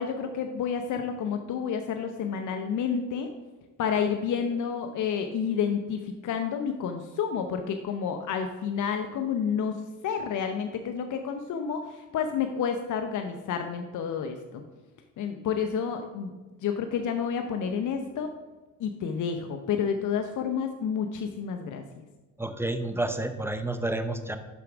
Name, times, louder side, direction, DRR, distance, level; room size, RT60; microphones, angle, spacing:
voice 1, 0.0-3.3 3.8-14.6 15.2-16.3 16.6-18.3 18.8-21.8, left 7 dB, 55° left, 6 dB, 0.8 m, -30 dB
voice 2, 22.4-24.4, right 2 dB, 5° right, 9 dB, 0.7 m, -30 dB
7.0 x 5.8 x 5.0 m, 1.2 s
supercardioid pair, 75°, 36 cm